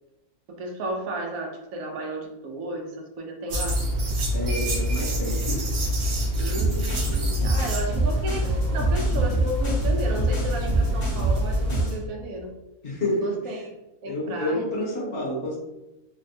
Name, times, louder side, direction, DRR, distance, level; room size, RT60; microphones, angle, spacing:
voice 1, 0.6-3.8 6.4-12.5 13.2-13.7 14.0-14.6, right 1 dB, 80° right, 2 dB, 1.0 m, -33 dB
sound 1, 3.5-11.8, equal, 55° right, 0.5 m, -26 dB
voice 2, 4.3-5.7 12.8-13.4 14.0-15.6, left 1 dB, 50° left, -4 dB, 1.1 m, -29 dB
sound 2, 6.6-12.0, right 3 dB, 75° left, 1.6 m, -27 dB
3.9 x 2.2 x 2.6 m, 0.97 s
omnidirectional pair, 1.5 m